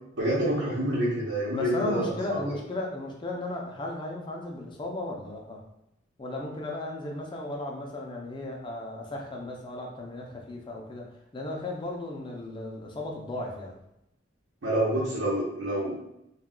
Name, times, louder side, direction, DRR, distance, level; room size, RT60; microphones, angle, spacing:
voice 1, 0.1-2.6 14.6-16.0, right 1 dB, 80° right, -9 dB, 0.9 m, -28 dB
voice 2, 1.5-5.6 6.2-13.8, left 2 dB, 25° left, 0 dB, 0.5 m, -35 dB
2.3 x 2.2 x 3.7 m, 0.80 s
head